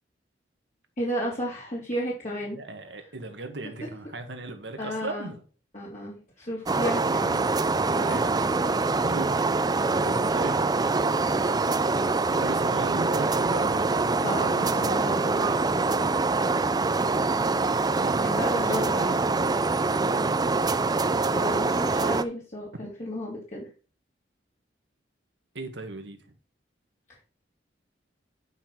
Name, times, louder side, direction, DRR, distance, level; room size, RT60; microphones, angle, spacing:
voice 1, 1.0-2.6 4.8-5.3 5.7-7.4 7.9-8.5 14.2-15.6 18.2-19.6 21.3-23.7, equal, 40° left, 3.1 m, -33 dB
voice 2, 2.5-5.4 8.1-8.3 9.0-11.0 12.3-14.4 17.9-18.4 25.5-26.2, right 2 dB, 75° right, 1.8 m, -37 dB
sound 1, 6.7-22.2, right 3 dB, 20° right, 0.5 m, -24 dB
10.0 x 5.8 x 4.5 m
head